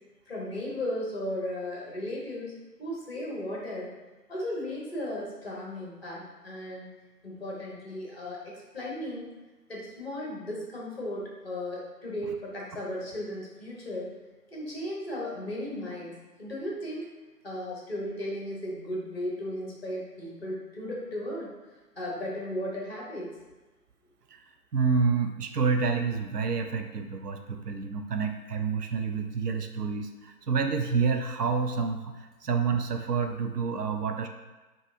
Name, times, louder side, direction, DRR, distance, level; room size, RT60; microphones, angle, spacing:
voice 1, 0.3-2.5 2.8-3.9 4.3-6.9 7.2-9.4 9.7-14.1 14.5-17.1 17.4-21.5 22.0-23.3, left 1 dB, 40° left, -4 dB, 1.0 m, -35 dB
voice 2, 24.7-34.3, right 5 dB, 75° right, 6 dB, 0.6 m, -28 dB
5.5 x 2.5 x 2.6 m, 1.2 s
figure-of-eight pair, 160°, 49 cm